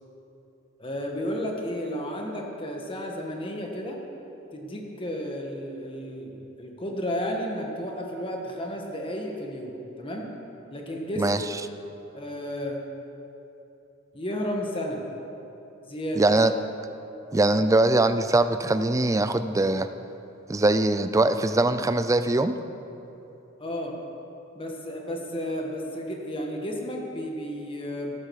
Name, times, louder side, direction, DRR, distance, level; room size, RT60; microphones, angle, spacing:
voice 1, 0.8-4.0 4.5-10.3 10.7-11.3 12.1-12.8 14.1-15.0 15.9-16.2 23.6-24.0 24.5-28.1, equal, 25° left, 1 dB, 1.6 m, -32 dB
voice 2, 16.2-16.5 17.3-19.9 20.5-22.5, right 2 dB, 15° right, 11 dB, 0.4 m, -22 dB
13.5 x 12.5 x 4.8 m, 3.0 s
head